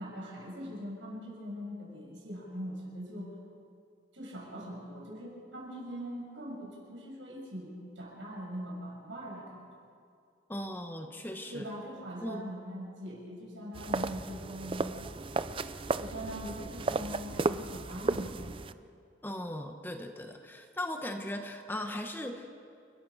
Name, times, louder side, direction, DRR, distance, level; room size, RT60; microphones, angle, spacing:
voice 1, 0.0-3.3 4.1-9.6 11.5-15.1 16.0-18.4, equal, 80° right, -3 dB, 7.4 m, -41 dB
voice 2, 10.5-11.6 12.2-12.4 19.2-22.5, left 1 dB, 10° left, 5 dB, 1.0 m, -38 dB
sound 1, 13.7-18.7, right 3 dB, 30° right, 0.4 m, -34 dB
29.5 x 14.5 x 6.3 m, 2.3 s
head